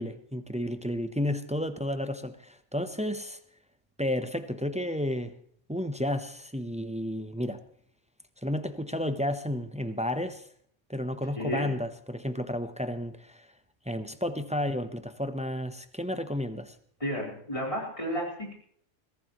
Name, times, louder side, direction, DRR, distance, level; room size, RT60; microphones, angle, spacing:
voice 1, 0.0-3.4 4.0-5.3 5.7-7.6 8.4-10.4 10.9-13.5 13.9-16.8, left 1 dB, 5° right, 0.6 m, -32 dB
voice 2, 11.4-11.7 17.0-18.5, equal, 25° left, 4.2 m, -32 dB
22.5 x 15.0 x 3.0 m
omnidirectional pair, 1.3 m